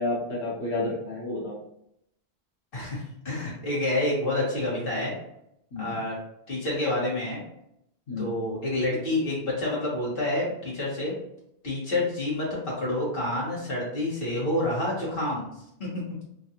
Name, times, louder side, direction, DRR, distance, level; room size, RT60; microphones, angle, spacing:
voice 1, 0.0-1.6 5.7-5.9 8.1-8.3, left 2 dB, 85° left, -7 dB, 1.3 m, -30 dB
voice 2, 2.7-5.1 5.8-6.2 6.5-7.4 8.2-11.1 11.6-15.5, left 1 dB, 60° left, -6 dB, 1.7 m, -28 dB
3.8 x 2.5 x 2.8 m, 0.77 s
omnidirectional pair, 1.0 m